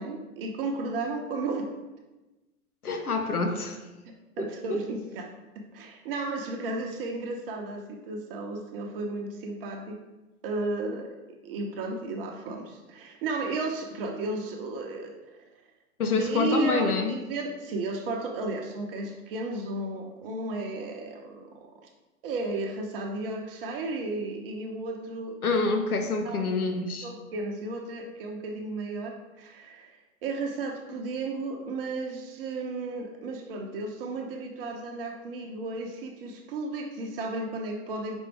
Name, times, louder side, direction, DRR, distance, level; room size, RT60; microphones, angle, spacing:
voice 1, 0.0-1.7 4.1-5.3 5.7-10.0 10.4-11.2 11.4-15.1 16.0-21.9 22.2-25.4 26.2-26.5 27.0-38.2, right 3 dB, 40° right, 2 dB, 0.8 m, -34 dB
voice 2, 2.8-3.8 4.4-4.8 16.0-17.1 25.4-27.1, left 4 dB, 85° left, 5 dB, 0.8 m, -27 dB
5.3 x 4.2 x 4.5 m, 1.1 s
figure-of-eight pair, 105°, 43 cm